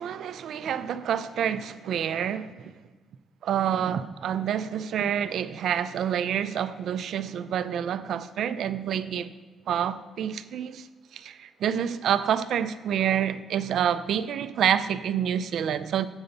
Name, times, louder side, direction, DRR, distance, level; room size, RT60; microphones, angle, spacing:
voice 1, 0.0-2.7 3.4-9.3 9.7-10.9 11.1-16.1, right 9 dB, 70° right, 0.4 m, -28 dB
8.0 x 3.9 x 6.5 m
cardioid pair, 90°, 0 cm